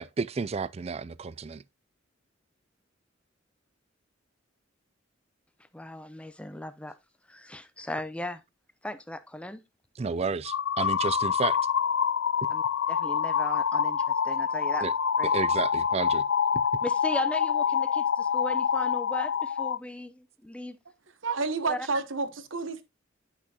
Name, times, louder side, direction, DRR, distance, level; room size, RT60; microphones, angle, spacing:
voice 1, 0.0-1.6 10.0-11.6 14.8-14.9 15.3-16.2, right 5 dB, 30° right, 0.4 m, -31 dB
voice 2, 5.7-7.0 7.3-8.4 8.8-9.6 12.5-12.6 12.9-14.8 15.2-15.3 16.8-20.8 21.7-21.9, left 1 dB, 5° left, 0.7 m, -37 dB
sound 1, 10.5-19.8, left 7 dB, 65° left, 0.4 m, -26 dB
voice 3, 21.2-22.8, right 4 dB, 75° right, 1.2 m, -30 dB
10.5 x 6.1 x 2.9 m
head